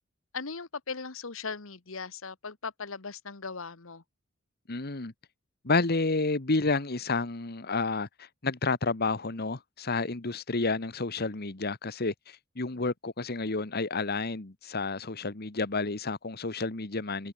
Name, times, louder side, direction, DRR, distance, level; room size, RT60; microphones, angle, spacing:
voice 1, 0.3-4.0 12.7-12.9, left 4 dB, 85° left, 1.5 m, -38 dB
voice 2, 4.7-5.1 5.6-8.1 8.4-17.3, left 3 dB, 50° left, 1.5 m, -30 dB
head